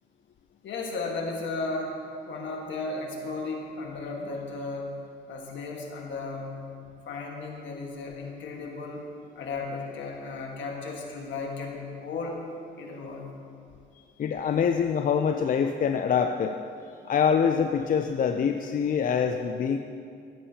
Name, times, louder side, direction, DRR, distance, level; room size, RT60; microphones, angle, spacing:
voice 1, 0.6-4.9 5.3-6.5 7.0-9.1 9.3-12.4 12.8-13.3, left 3 dB, 70° left, 0 dB, 1.5 m, -35 dB
voice 2, 14.2-16.6 17.1-19.8, left 7 dB, 45° left, 6 dB, 0.4 m, -25 dB
15.5 x 7.5 x 2.8 m, 2.4 s
cardioid pair, 90°, 20 cm